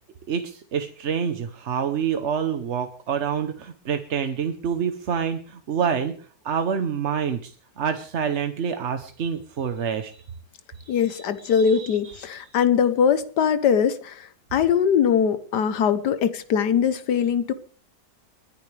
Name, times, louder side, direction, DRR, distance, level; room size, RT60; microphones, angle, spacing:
voice 1, 0.3-6.2 6.4-10.2 10.8-12.2, right 7 dB, 50° right, 7 dB, 1.0 m, -27 dB
voice 2, 10.9-17.5, left 7 dB, 75° left, 13 dB, 1.4 m, -21 dB
30.0 x 10.0 x 3.3 m, 0.40 s
omnidirectional pair, 1.8 m